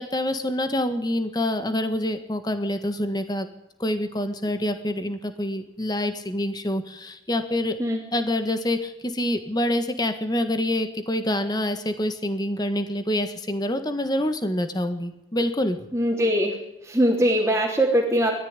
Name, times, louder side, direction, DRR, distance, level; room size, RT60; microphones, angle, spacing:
voice 1, 0.0-3.5 3.8-7.8 8.1-15.8, left 1 dB, 20° left, 8 dB, 1.6 m, -26 dB
voice 2, 15.9-16.5 16.8-18.3, equal, 15° right, -4 dB, 3.3 m, -21 dB
20.5 x 14.0 x 9.8 m, 0.89 s
head